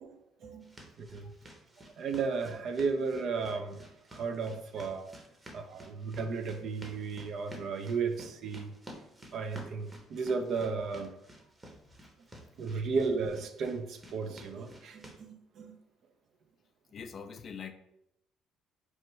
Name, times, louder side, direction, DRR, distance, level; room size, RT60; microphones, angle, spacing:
voice 1, 0.0-0.7 1.0-1.3 1.8-3.8 4.1-5.1 5.5-8.7 9.3-11.1 12.6-15.8, right 4 dB, 65° right, 7 dB, 0.4 m, -34 dB
sound 1, 0.6-15.2, right 1 dB, 25° right, 0.8 m, -52 dB
voice 2, 16.9-17.7, left 6 dB, 50° left, 9 dB, 0.3 m, -43 dB
3.0 x 2.2 x 3.1 m, 0.81 s
supercardioid pair, 65°, 0 cm